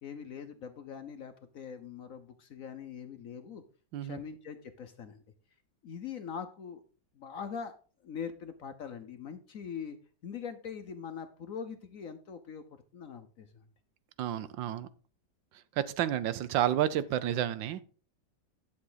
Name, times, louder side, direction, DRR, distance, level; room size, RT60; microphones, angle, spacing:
voice 1, 0.0-3.6 4.0-5.2 5.8-6.8 7.1-7.7 8.0-10.0 10.2-12.6 12.9-13.6, left 7 dB, 60° left, 8 dB, 0.9 m, -42 dB
voice 2, 14.2-14.9 15.7-17.8, right 11 dB, 75° right, 15 dB, 1.4 m, -30 dB
11.0 x 6.9 x 3.9 m, 0.39 s
omnidirectional pair, 2.1 m